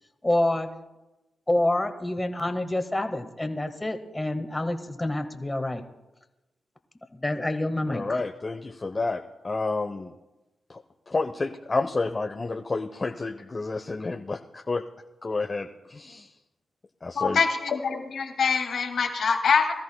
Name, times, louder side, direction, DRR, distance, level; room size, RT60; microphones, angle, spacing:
voice 1, 0.2-0.7 1.5-5.8 7.1-8.2, left 1 dB, 20° left, 6 dB, 1.6 m, -27 dB
voice 2, 7.9-10.1 10.7-14.8 15.2-16.3 17.0-17.4, left 3 dB, 40° left, 4 dB, 0.9 m, -30 dB
voice 3, 17.1-19.7, left 5 dB, 70° left, 2 dB, 2.2 m, -24 dB
22.0 x 14.0 x 2.3 m, 1.0 s
supercardioid pair, 40°, 0 cm